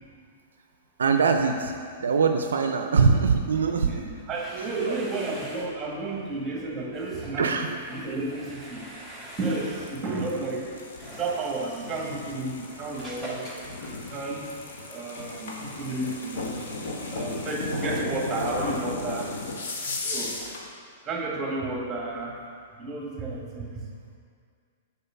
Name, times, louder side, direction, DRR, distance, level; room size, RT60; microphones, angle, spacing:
voice 1, 1.0-1.7 2.0-4.1 4.8-4.9 7.4-7.8 17.7-17.8 19.9-20.0, right 5 dB, 85° right, 5 dB, 0.5 m, -23 dB
sound 1, 4.1-14.7, right 1 dB, 5° left, 1.7 m, -44 dB
voice 2, 4.3-7.6 7.9-8.9 9.4-10.7 11.1-13.5 14.1-14.4 14.9-16.5 17.1-19.3 20.0-20.4 21.0-22.4 22.8-23.9, right 2 dB, 20° right, -2 dB, 1.8 m, -32 dB
sound 2, 9.7-20.7, left 2 dB, 70° left, 1.3 m, -35 dB
6.8 x 4.4 x 5.7 m, 2.1 s
hypercardioid pair, 120°, 0 cm